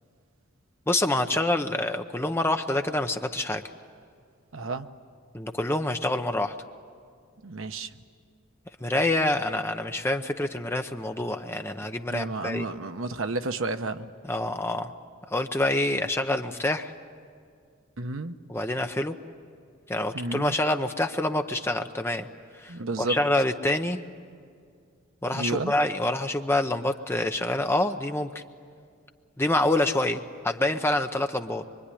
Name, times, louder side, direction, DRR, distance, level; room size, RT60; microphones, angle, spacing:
voice 1, 0.9-3.6 5.3-6.6 8.8-12.6 14.3-14.9 15.3-16.9 18.5-19.2 19.9-22.3 22.6-24.0 25.2-28.4 29.4-31.6, left 1 dB, 10° left, 6 dB, 0.7 m, -26 dB
voice 2, 4.5-4.9 7.4-7.9 12.1-14.1 18.0-18.4 20.1-20.6 22.7-23.2 25.3-25.7, right 2 dB, 65° right, 8 dB, 0.9 m, -31 dB
24.5 x 24.5 x 10.0 m, 2.2 s
head